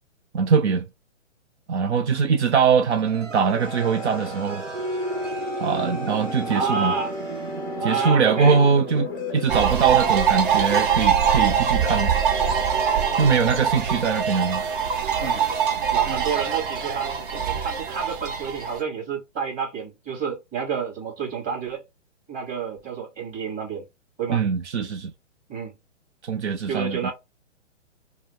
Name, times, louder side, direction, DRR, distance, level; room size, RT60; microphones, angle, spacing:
voice 1, 0.3-0.9 1.7-4.6 5.6-6.9 7.8-12.1 13.1-14.6 24.3-25.1 26.2-27.1, right 6 dB, 65° right, 0.7 m, -22 dB
sound 1, 2.9-15.4, right 3 dB, 90° right, 0.9 m, -36 dB
sound 2, 3.2-13.6, left 5 dB, 15° left, 0.4 m, -36 dB
voice 2, 6.5-7.2 7.8-8.6 15.9-21.8 22.3-23.8 24.2-24.4 25.5-25.7 26.7-27.1, right 6 dB, 20° right, 2.5 m, -29 dB
sound 3, 9.5-18.8, right 8 dB, 45° right, 1.0 m, -23 dB
4.8 x 2.2 x 3.4 m
hypercardioid pair, 145°, 37 cm